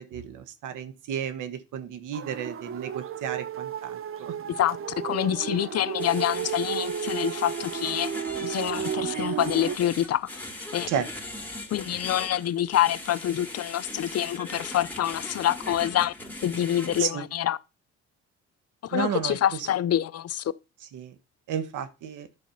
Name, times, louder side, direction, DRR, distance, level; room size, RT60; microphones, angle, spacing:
voice 1, 0.0-4.3 10.9-11.1 17.0-17.2 18.9-19.7 20.9-21.1 21.5-22.3, right 8 dB, 85° right, 1.3 m, -32 dB
sound 1, 2.1-9.8, right 8 dB, 45° right, 0.8 m, -33 dB
voice 2, 4.6-8.1 8.4-10.9 11.7-16.1 16.4-17.6 18.8-20.4, left 11 dB, 55° left, 0.6 m, -26 dB
sound 2, 6.0-17.0, left 1 dB, 5° left, 2.7 m, -39 dB
9.8 x 4.2 x 5.7 m
cardioid pair, 90°, 30 cm